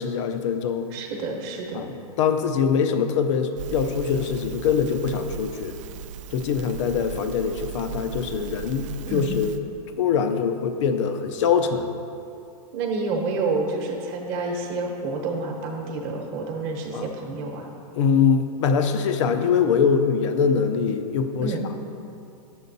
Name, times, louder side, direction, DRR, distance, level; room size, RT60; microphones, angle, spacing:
voice 1, 0.0-0.9 1.7-5.8 6.3-9.5 10.0-11.9 16.9-17.1 18.0-21.5, left 6 dB, 50° left, 8 dB, 0.6 m, -23 dB
voice 2, 0.9-1.9 9.1-9.3 12.7-17.7 21.4-21.6, right 3 dB, 35° right, 1 dB, 1.1 m, -29 dB
Crackle, 3.6-9.6, right 7 dB, 55° right, 0.5 m, -37 dB
9.3 x 7.0 x 4.1 m, 2.7 s
supercardioid pair, 160°, 20 cm